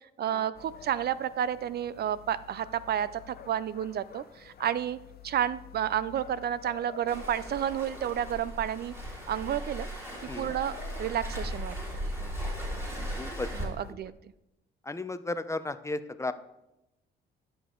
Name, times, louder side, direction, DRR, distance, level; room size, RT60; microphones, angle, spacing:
voice 1, 0.2-5.0 5.2-8.9 9.3-9.9 10.4-11.8 13.5-14.1, right 10 dB, 55° right, 17 dB, 0.4 m, -31 dB
sound 1, 0.5-13.9, left 8 dB, 50° left, 0.7 m, -50 dB
Waves surf, 7.1-13.6, equal, 15° right, 3.3 m, -37 dB
voice 2, 13.2-14.0 14.8-16.3, left 2 dB, 15° left, 12 dB, 0.5 m, -35 dB
11.0 x 6.8 x 3.7 m, 0.91 s
cardioid pair, 90°, 20 cm